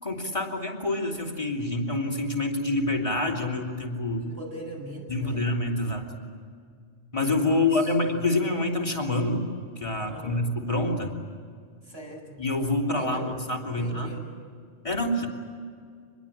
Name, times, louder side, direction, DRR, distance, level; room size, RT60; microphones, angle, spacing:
voice 1, 0.0-4.2 5.1-6.1 7.1-11.1 12.4-14.1 14.8-15.3, left 2 dB, 30° left, 2 dB, 3.4 m, -27 dB
voice 2, 4.2-5.4 7.5-8.1 10.1-10.4 11.8-12.4 12.9-13.3 13.7-14.3, right 1 dB, 70° right, 0 dB, 7.2 m, -41 dB
26.5 x 21.5 x 8.7 m, 2.1 s
omnidirectional pair, 1.1 m